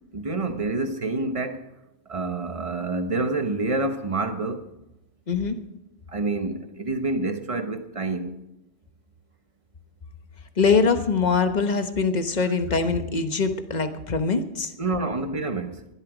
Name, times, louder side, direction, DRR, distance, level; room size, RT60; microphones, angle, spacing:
voice 1, 0.1-1.7 2.1-4.7 6.1-8.4 14.8-15.9, right 3 dB, 30° right, 1.1 m, -28 dB
voice 2, 5.3-5.6 10.6-14.7, left 4 dB, 40° left, 1.2 m, -23 dB
19.0 x 12.5 x 5.0 m
omnidirectional pair, 1.2 m